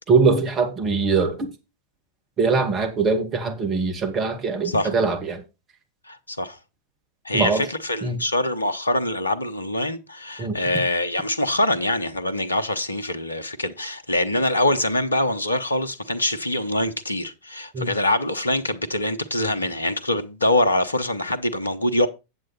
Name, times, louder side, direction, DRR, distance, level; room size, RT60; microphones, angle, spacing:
voice 1, 0.1-1.5 2.4-5.4 7.3-7.6 8.0-8.2 10.4-10.6 17.7-17.9, right 4 dB, 25° right, 2.1 m, -22 dB
voice 2, 4.6-5.0 6.1-6.6 7.2-22.1, left 1 dB, 80° left, 0.9 m, -24 dB
8.9 x 7.6 x 4.2 m
figure-of-eight pair, 90°, 0 cm